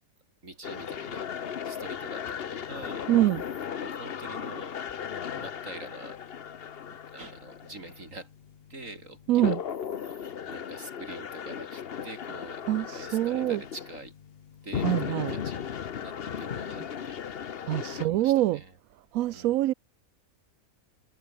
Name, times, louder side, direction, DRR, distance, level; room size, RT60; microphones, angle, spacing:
voice 1, 0.4-1.3 1.6-3.1 3.8-4.8 5.4-6.2 6.8-8.3 8.7-9.6 10.5-14.1 14.6-15.7 16.0-17.2 17.9-18.8 19.3-19.6, right 2 dB, 65° right, 5.5 m, -45 dB
sound 1, 0.6-18.1, left 8 dB, 50° left, 1.0 m, -37 dB
voice 2, 3.1-3.4 9.3-9.6 12.7-13.6 14.8-15.3 17.7-18.6 19.1-19.7, right 14 dB, 80° right, 1.0 m, -25 dB
omnidirectional pair, 1.5 m